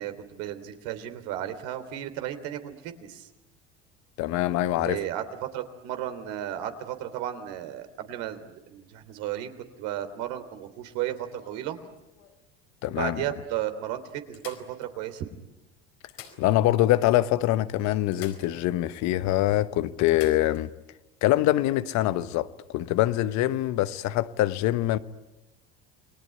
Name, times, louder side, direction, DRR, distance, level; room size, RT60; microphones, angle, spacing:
voice 1, 0.0-3.3 4.8-9.5 9.8-11.8 13.0-14.0 14.3-15.3, right 12 dB, 70° right, 3.3 m, -34 dB
voice 2, 4.2-5.0 12.8-13.2 16.4-20.7 21.2-22.5 22.7-25.0, left 15 dB, 65° left, 1.2 m, -24 dB
sound 1, 10.8-12.4 13.1-13.2 13.5-13.6 14.3-15.3 15.9-16.9 17.2-17.3 18.1-19.0 19.3-19.4 20.1-20.7 22.6-22.8, left 10 dB, 85° left, 4.6 m, -49 dB
29.5 x 20.0 x 9.6 m
hypercardioid pair, 80°, 31 cm